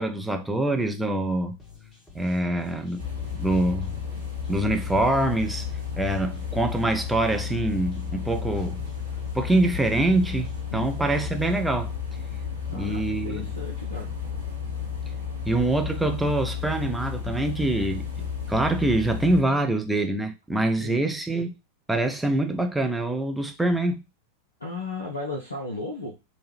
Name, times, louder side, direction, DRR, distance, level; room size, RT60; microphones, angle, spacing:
voice 1, 0.0-1.6 2.1-3.1 3.3-4.0 4.5-5.7 6.0-8.8 9.3-11.9 12.7-13.5 15.5-18.1 18.5-21.6 21.9-24.0, right 2 dB, 5° right, 0.4 m, -25 dB
sound 1, 1.6-11.7, left 4 dB, 20° left, 1.2 m, -50 dB
sound 2, 3.0-19.4, left 7 dB, 85° right, 0.9 m, -32 dB
voice 2, 12.7-14.1 20.8-21.0 24.6-26.1, left 2 dB, 75° left, 0.5 m, -35 dB
3.1 x 2.1 x 3.2 m
figure-of-eight pair, 90°, 0 cm